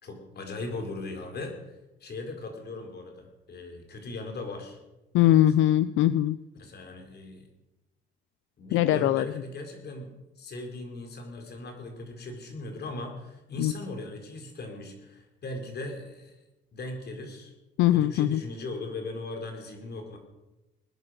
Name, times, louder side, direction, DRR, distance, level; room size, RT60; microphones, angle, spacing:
voice 1, 0.0-4.8 5.2-5.4 6.6-7.5 8.6-10.1 10.4-16.4 16.7-17.5 17.9-20.2, left 2 dB, 55° left, 4 dB, 4.4 m, -39 dB
voice 2, 5.1-6.4 8.7-9.2 13.6-13.7 17.8-18.4, left 13 dB, 90° left, 15 dB, 0.5 m, -21 dB
20.5 x 9.8 x 6.6 m, 0.98 s
cardioid pair, 90°, 20 cm